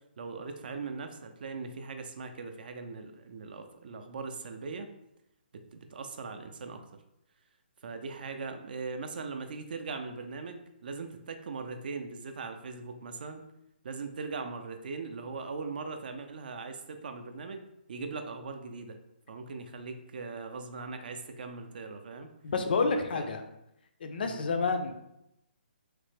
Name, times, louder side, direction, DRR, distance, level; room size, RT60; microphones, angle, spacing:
voice 1, 0.2-4.9 5.5-6.8 7.8-13.4 13.8-19.0 19.3-22.3 23.1-23.3 24.2-24.4, right 4 dB, 55° right, 7 dB, 0.4 m, -40 dB
voice 2, 22.4-23.4 24.0-25.0, left 4 dB, 60° left, 6 dB, 0.4 m, -29 dB
3.2 x 2.0 x 3.2 m, 0.84 s
hypercardioid pair, 160°, 6 cm